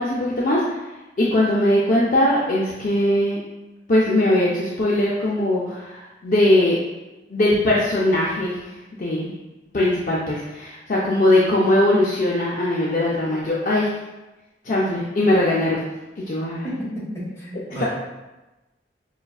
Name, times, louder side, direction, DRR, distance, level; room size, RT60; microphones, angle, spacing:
voice 1, 0.0-3.4 3.9-6.8 7.3-8.6 9.0-9.3 9.7-14.0 14.6-15.8 16.2-16.6, left 1 dB, 45° left, -5 dB, 0.4 m, -20 dB
voice 2, 16.6-17.9, equal, 15° left, -9 dB, 1.3 m, -31 dB
5.0 x 2.4 x 2.3 m, 1.0 s
head